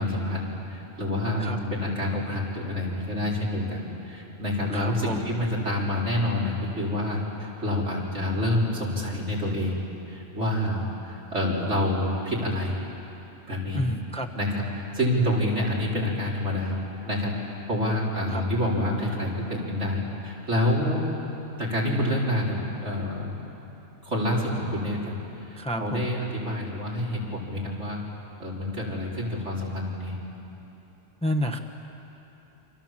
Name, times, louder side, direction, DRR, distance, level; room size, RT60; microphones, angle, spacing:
voice 1, 0.0-9.8 10.1-12.8 13.5-13.8 14.3-16.7 17.0-21.1 21.6-23.4 24.0-25.1 25.5-28.0 28.4-30.1, left 1 dB, 70° right, -4 dB, 5.0 m, -27 dB
voice 2, 4.7-5.2 13.7-14.3 15.1-15.3 18.3-18.4 25.6-26.1 31.2-31.6, equal, 5° left, 5 dB, 1.0 m, -29 dB
29.0 x 25.5 x 7.5 m, 3.0 s
omnidirectional pair, 1.2 m